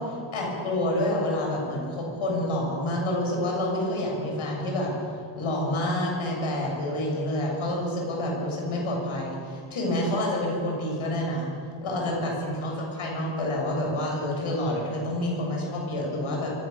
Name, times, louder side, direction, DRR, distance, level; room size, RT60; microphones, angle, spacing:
voice 1, 0.0-4.9 5.4-11.5 11.8-16.5, left 1 dB, 80° left, -1 dB, 7.5 m, -28 dB
23.5 x 16.5 x 6.9 m, 2.4 s
cardioid pair, 85°, 49 cm